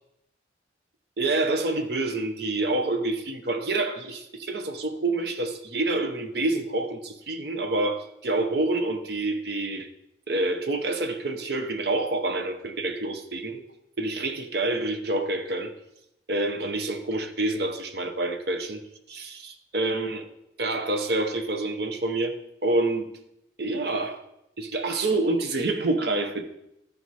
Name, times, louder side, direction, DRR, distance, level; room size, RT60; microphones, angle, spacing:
voice 1, 1.2-9.9 10.3-13.6 14.0-15.7 16.3-18.8 19.1-19.2 19.7-20.2 20.6-22.3 22.6-23.1 23.6-24.2 24.6-26.4, right 2 dB, 60° right, 6 dB, 0.8 m, -27 dB
13.0 x 4.6 x 4.1 m, 0.83 s
head